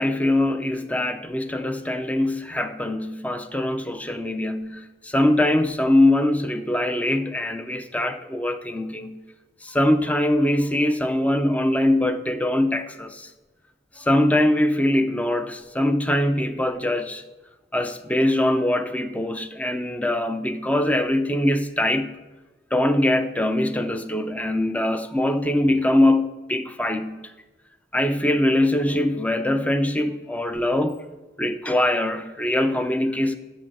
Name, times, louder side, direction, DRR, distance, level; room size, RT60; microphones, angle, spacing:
voice 1, 0.0-9.2 9.6-13.3 14.0-17.2 17.7-22.1 22.7-27.2 27.9-31.0 31.4-33.4, left 1 dB, 10° left, 0.5 m, -22 dB
11.5 x 8.2 x 6.0 m
head